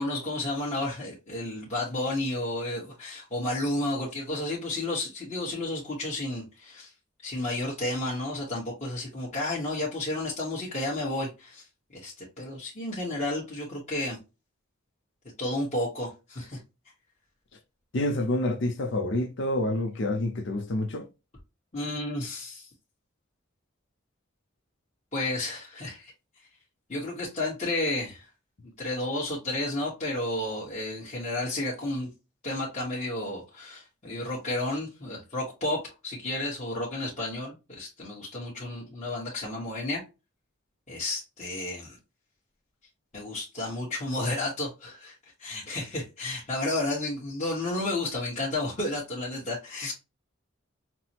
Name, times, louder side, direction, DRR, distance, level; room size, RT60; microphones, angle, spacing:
voice 1, 0.0-6.9 7.2-11.6 11.9-14.2 15.4-16.6 21.7-22.7 25.1-26.1 26.9-28.3 28.8-32.1 32.4-40.0 40.9-42.0 43.1-45.1 45.4-49.9, left 2 dB, 35° left, 1.2 m, -32 dB
voice 2, 17.9-21.1, left 1 dB, 60° left, 0.6 m, -28 dB
5.8 x 2.0 x 2.8 m
head